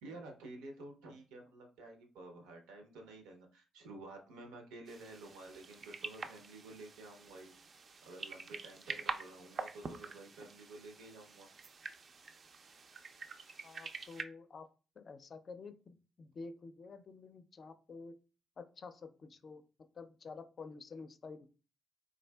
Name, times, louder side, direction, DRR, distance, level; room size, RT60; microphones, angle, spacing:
voice 1, 0.0-7.5 8.0-11.5, right 2 dB, 85° right, 4 dB, 0.7 m, -51 dB
sound 1, 4.9-14.2, right 4 dB, 55° right, 0.4 m, -46 dB
voice 2, 13.6-14.7 15.0-18.2 18.6-19.6 19.9-21.5, left 4 dB, 50° left, 10 dB, 0.4 m, -50 dB
3.7 x 2.6 x 2.2 m, 0.35 s
supercardioid pair, 55°, 0 cm